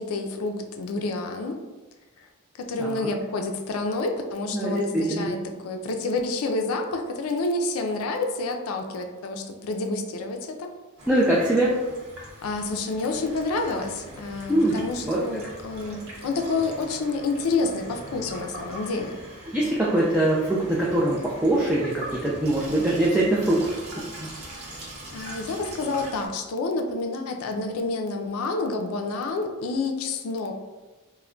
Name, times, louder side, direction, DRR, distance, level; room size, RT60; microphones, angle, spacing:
voice 1, 0.0-1.6 2.2-2.3 2.6-5.4 5.6-10.7 12.4-19.2 24.6-24.8 25.1-30.6, left 3 dB, 85° left, 4 dB, 0.4 m, -29 dB
voice 2, 2.8-3.1 4.5-5.3 11.1-11.8 14.5-14.7 15.0-15.2 19.5-23.7 24.0-24.3, right 1 dB, 5° right, -6 dB, 0.3 m, -23 dB
Water tap faucet / Sink (filling or washing), 11.0-26.3, right 1 dB, 85° right, 0.8 m, -41 dB
2.2 x 2.1 x 3.6 m, 1.2 s
head